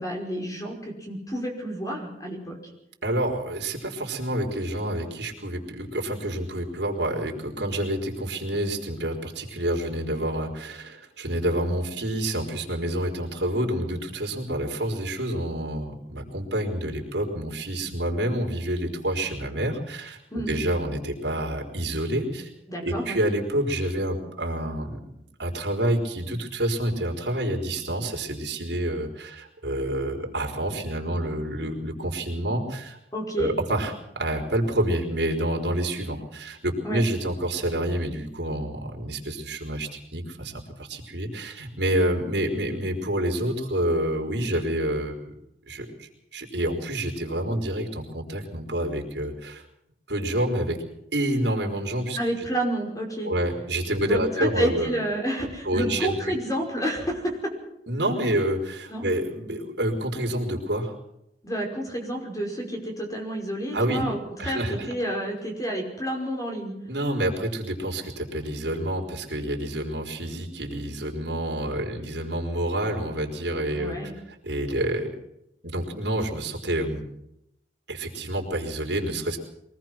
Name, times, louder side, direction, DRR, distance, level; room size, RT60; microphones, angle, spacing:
voice 1, 0.0-2.6 20.3-20.6 22.7-23.2 33.1-33.5 36.8-37.0 52.2-53.3 54.0-57.5 58.9-59.1 61.4-66.8 73.7-74.2, right 1 dB, 20° left, 1 dB, 5.4 m, -30 dB
voice 2, 3.0-22.5 22.8-25.0 25.4-33.0 33.4-45.3 45.7-49.6 50.1-50.8 51.1-52.2 53.2-54.9 55.6-56.3 57.9-60.9 63.7-64.1 64.4-64.9 66.9-74.0 74.4-75.1 75.6-77.0 77.9-79.4, right 1 dB, 75° right, 0 dB, 4.6 m, -28 dB
24.0 x 19.0 x 6.1 m, 0.82 s
head